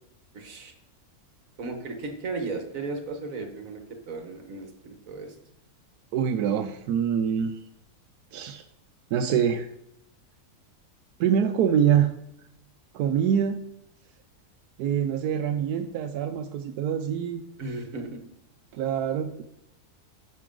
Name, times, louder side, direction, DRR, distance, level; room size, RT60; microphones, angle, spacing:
voice 1, 0.3-0.7 1.6-5.4 17.6-18.2, right 3 dB, 60° right, 4 dB, 1.8 m, -35 dB
voice 2, 6.1-7.6 8.3-8.6 9.1-9.7 11.2-12.1 12.9-13.6 14.8-17.4 18.7-19.4, right 8 dB, 85° right, 7 dB, 1.1 m, -25 dB
9.5 x 6.7 x 3.8 m, 0.77 s
omnidirectional pair, 1.6 m